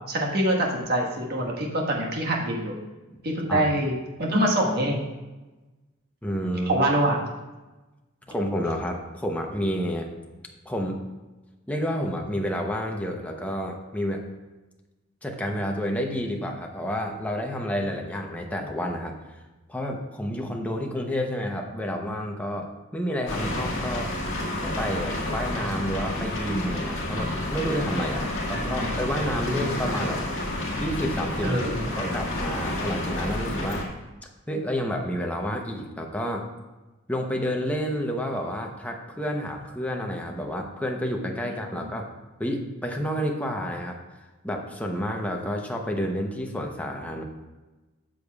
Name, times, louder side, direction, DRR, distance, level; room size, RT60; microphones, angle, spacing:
voice 1, 0.1-2.7 3.2-3.9 4.2-5.0 6.7-7.2 28.1-28.9 29.4-29.8 31.4-31.9 41.7-41.9, right 1 dB, 50° right, -1 dB, 1.5 m, -25 dB
voice 2, 6.2-6.9 8.3-10.1 10.6-11.0 11.7-14.2 15.2-19.4 19.7-24.1 24.6-30.2 30.8-33.9 34.5-36.4 37.1-42.1 42.4-44.0 44.4-47.2, equal, 5° left, 1 dB, 0.8 m, -30 dB
sound 1, 23.3-33.8, left 1 dB, 65° left, 2.0 m, -30 dB
13.0 x 7.0 x 2.3 m, 1.1 s
head